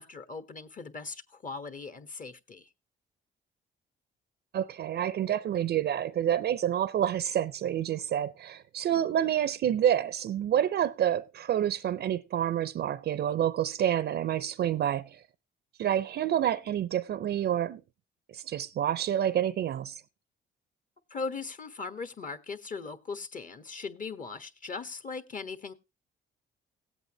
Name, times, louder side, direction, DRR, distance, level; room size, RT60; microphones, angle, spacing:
voice 1, 0.0-2.7 21.1-25.7, left 4 dB, 40° left, 1.4 m, -39 dB
voice 2, 4.5-15.2 15.8-17.8 18.3-20.0, right 10 dB, 60° right, 0.5 m, -28 dB
17.5 x 8.2 x 3.0 m
cardioid pair, 90°, 20 cm